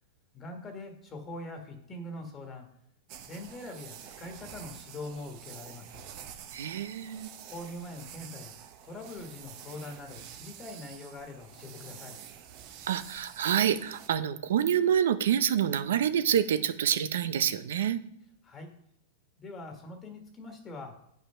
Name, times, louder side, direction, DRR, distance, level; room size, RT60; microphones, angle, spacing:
voice 1, 0.3-2.6 3.3-6.1 7.5-8.5 8.8-12.2 18.4-18.7 19.4-20.9, left 2 dB, 25° left, 3 dB, 1.6 m, -43 dB
sound 1, 3.1-14.1, right 9 dB, 50° right, 1.0 m, -48 dB
voice 2, 6.5-7.3 12.8-18.0, right 9 dB, 80° right, 12 dB, 0.7 m, -27 dB
8.9 x 5.6 x 5.7 m, 0.75 s
hypercardioid pair, 135°, 0 cm